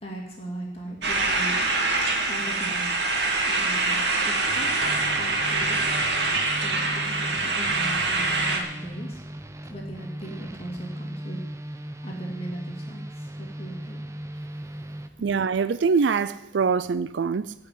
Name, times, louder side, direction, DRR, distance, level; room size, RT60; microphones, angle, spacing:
voice 1, 0.0-1.6 2.3-2.8 3.5-5.8 6.6-9.2 9.7-11.4 12.0-14.1, right 1 dB, 35° left, 2.5 m, -38 dB
sound 1, 1.0-8.6, right 3 dB, 75° right, 2.3 m, -25 dB
sound 2, 4.5-15.1, equal, 15° right, 0.7 m, -38 dB
voice 2, 15.2-17.5, right 5 dB, 90° right, 0.4 m, -24 dB
15.5 x 5.8 x 9.4 m
head